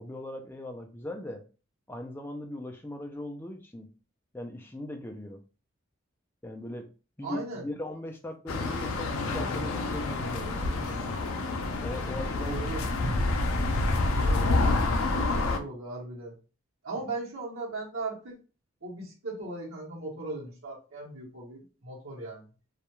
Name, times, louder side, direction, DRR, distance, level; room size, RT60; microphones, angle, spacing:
voice 1, 0.0-1.4 1.9-3.9 4.3-5.4 6.4-6.9 7.2-11.1 11.8-13.4, left 1 dB, 10° left, 4 dB, 0.3 m, -39 dB
voice 2, 7.2-7.6 12.4-12.8 14.1-14.5 14.9-16.3 16.8-18.4 18.8-22.5, right 3 dB, 75° right, -5 dB, 0.9 m, -38 dB
sound 1, 8.5-15.6, left 2 dB, 80° left, 0.4 m, -28 dB
2.3 x 2.2 x 2.9 m, 0.34 s
head